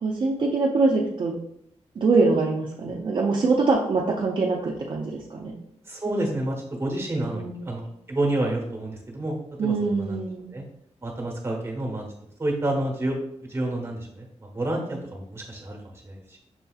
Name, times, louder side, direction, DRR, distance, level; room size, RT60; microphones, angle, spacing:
voice 1, 0.0-1.4 2.0-5.6 7.3-7.8 9.6-10.5, right 3 dB, 45° right, -1 dB, 0.4 m, -24 dB
voice 2, 5.9-9.4 9.6-10.2 10.5-10.6 11.0-12.0 12.4-13.2 13.5-16.4, right 1 dB, 20° right, 0 dB, 0.9 m, -29 dB
6.2 x 2.7 x 2.3 m, 0.74 s
wide cardioid pair, 175°, 12 cm